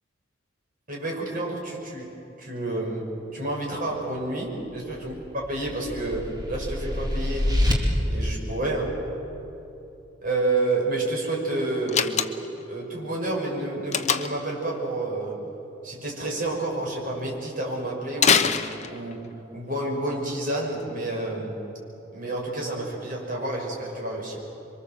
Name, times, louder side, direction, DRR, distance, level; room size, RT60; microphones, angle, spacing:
voice 1, 0.9-5.1 5.5-7.5 8.1-9.0 10.2-12.2 12.6-15.4 15.8-18.6 18.9-21.6 22.1-24.4, right 2 dB, 45° right, -1 dB, 6.2 m, -29 dB
sound 1, 4.9-7.7, left 1 dB, 20° right, 2.8 m, -27 dB
Slam, 11.9-12.6 13.9-14.5 18.2-19.3, left 7 dB, 35° left, 0.9 m, -23 dB
27.0 x 24.0 x 7.7 m, 2.9 s
head